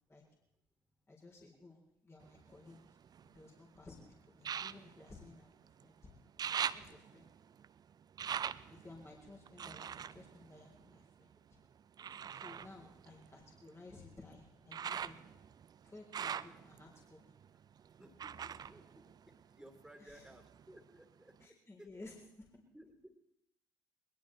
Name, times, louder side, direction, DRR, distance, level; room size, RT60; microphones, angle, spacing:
voice 1, 1.1-2.8 3.2-6.2 6.6-7.3 8.7-11.3 12.3-15.4 15.8-17.3 20.0-20.3 21.4-22.5, left 2 dB, 25° left, -2 dB, 3.8 m, -56 dB
sound 1, 2.2-3.6 4.4-5.9 6.2-11.3 12.0-19.8 20.1-21.0 21.4-21.5, right 8 dB, 40° right, 0.6 m, -44 dB
voice 2, 18.0-19.0 19.5-22.1 22.7-23.1, right 1 dB, 5° right, 4 dB, 3.2 m, -58 dB
21.0 x 20.5 x 3.3 m, 0.82 s
hypercardioid pair, 55°, 11 cm